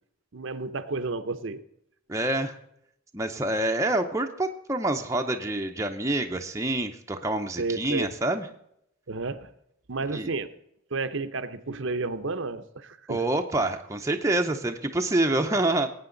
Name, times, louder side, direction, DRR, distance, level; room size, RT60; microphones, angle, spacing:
voice 1, 0.3-1.6 7.6-8.1 9.1-9.5 9.9-10.5 10.9-13.2, right 3 dB, 60° right, 10 dB, 0.7 m, -31 dB
voice 2, 2.1-2.6 3.1-8.5 10.1-10.3 13.1-15.9, right 2 dB, 15° right, 4 dB, 0.7 m, -27 dB
19.5 x 8.9 x 3.9 m, 0.74 s
head